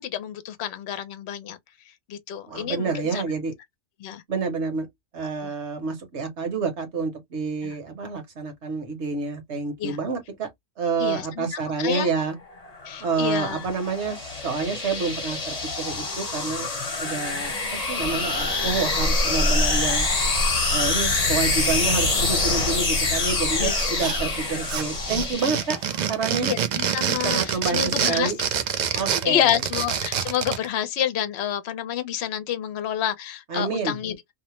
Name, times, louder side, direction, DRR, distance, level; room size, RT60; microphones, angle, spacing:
voice 1, 0.0-1.6 2.1-3.2 4.0-4.2 5.4-5.5 7.6-7.7 9.8-10.0 11.0-11.4 11.8-12.1 12.9-13.6 23.6-23.8 26.4-28.3 28.9-34.2, left 10 dB, 65° left, 0.8 m, -28 dB
voice 2, 2.5-3.5 4.3-4.9 5.1-10.5 10.8-12.4 13.0-16.7 17.0-20.1 20.7-25.8 26.1-26.5 27.2-28.4 29.0-29.5 33.5-34.0, right 4 dB, 60° right, 1.2 m, -28 dB
sound 1, 12.6-26.0, left 3 dB, 35° left, 0.9 m, -26 dB
sound 2, 18.0-25.3, equal, 30° right, 0.8 m, -31 dB
sound 3, 23.8-24.4 24.7-30.6, right 8 dB, 85° right, 0.3 m, -26 dB
2.8 x 2.0 x 3.0 m
omnidirectional pair, 1.3 m